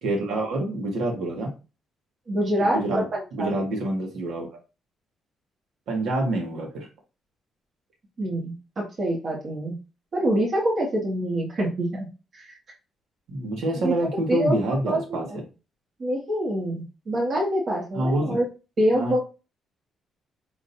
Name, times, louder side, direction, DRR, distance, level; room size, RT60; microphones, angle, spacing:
voice 1, 0.0-1.5 2.6-4.5 5.9-6.9 13.3-15.3 17.9-18.4 18.9-19.2, right 1 dB, 80° right, 1 dB, 1.9 m, -27 dB
voice 2, 2.3-3.5 8.2-9.7 10.1-12.1 12.3-12.5 13.8-13.9 14.3-14.5 14.9-15.4 16.0-18.5 18.8-19.2, right 1 dB, 45° right, -1 dB, 1.7 m, -25 dB
5.0 x 3.8 x 2.7 m, 0.30 s
cardioid pair, 90°, 0 cm